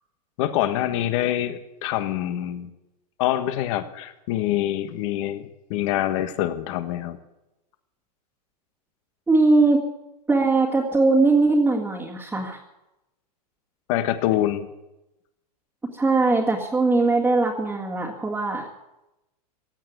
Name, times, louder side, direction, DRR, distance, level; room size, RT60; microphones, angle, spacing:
voice 1, 0.4-2.7 3.2-7.2 13.9-14.7, left 13 dB, 50° left, 10 dB, 1.5 m, -25 dB
voice 2, 9.3-9.9 10.3-12.6 15.9-18.7, right 3 dB, 5° right, -5 dB, 2.0 m, -20 dB
16.5 x 9.1 x 9.5 m, 0.96 s
supercardioid pair, 145°, 21 cm